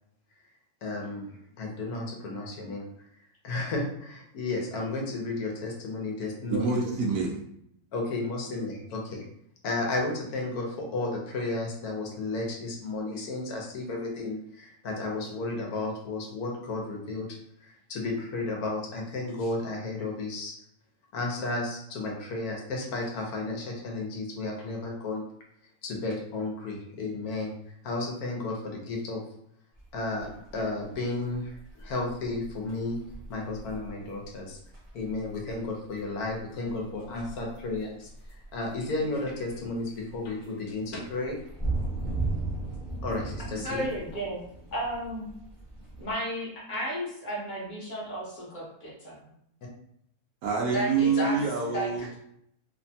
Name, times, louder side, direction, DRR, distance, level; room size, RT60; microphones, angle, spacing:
voice 1, 0.8-2.8 3.4-6.8 7.9-9.3 9.6-17.3 17.6-20.5 21.1-25.2 25.8-27.5 27.8-29.2 29.9-30.3 30.5-33.0 33.3-34.6 34.9-38.1 38.5-41.4 43.0-43.8, left 2 dB, 80° left, 0 dB, 1.2 m, -33 dB
voice 2, 6.5-7.3 50.4-52.1, right 5 dB, 80° right, -2 dB, 1.1 m, -26 dB
sound 1, 29.7-46.1, right 2 dB, 25° right, 0.8 m, -38 dB
voice 3, 43.6-44.4 44.7-45.3 46.0-49.2 50.7-51.4 51.7-52.2, right 1 dB, 35° left, -4 dB, 1.0 m, -33 dB
3.1 x 2.2 x 2.6 m, 0.73 s
omnidirectional pair, 1.6 m